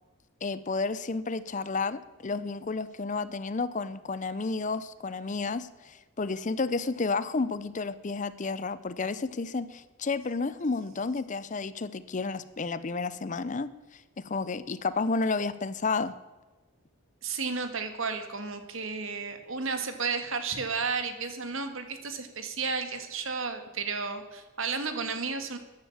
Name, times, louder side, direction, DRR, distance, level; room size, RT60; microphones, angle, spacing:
voice 1, 0.4-13.7 14.2-16.1, left 4 dB, 35° left, 15 dB, 0.5 m, -31 dB
voice 2, 17.2-25.6, right 4 dB, 60° right, 8 dB, 1.7 m, -33 dB
14.5 x 10.5 x 7.2 m, 1.2 s
head